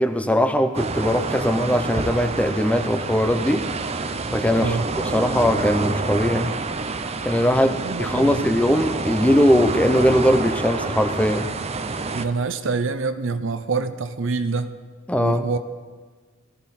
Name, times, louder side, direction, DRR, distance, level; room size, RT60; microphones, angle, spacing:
voice 1, 0.0-3.7 4.3-4.8 5.0-6.6 7.2-11.5 15.1-15.5, equal, 5° left, 7 dB, 0.7 m, -20 dB
sound 1, 0.7-12.3, right 3 dB, 30° right, 0.7 m, -28 dB
voice 2, 4.6-4.9 7.6-8.5 12.1-14.7 15.2-15.6, right 4 dB, 70° right, 10 dB, 0.7 m, -26 dB
17.0 x 14.0 x 4.3 m, 1.4 s
head